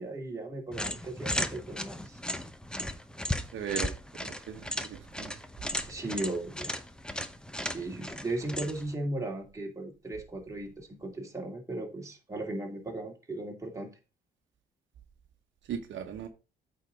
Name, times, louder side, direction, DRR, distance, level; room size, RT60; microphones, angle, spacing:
voice 1, 0.0-2.2 5.9-6.7 7.6-13.9, right 2 dB, 15° right, 2.4 m, -37 dB
sound 1, 0.7-8.9, left 1 dB, 5° left, 0.8 m, -36 dB
voice 2, 3.5-3.9 4.5-5.3 15.7-16.3, right 8 dB, 70° right, 1.1 m, -37 dB
8.4 x 4.1 x 5.1 m
cardioid pair, 90°, 20 cm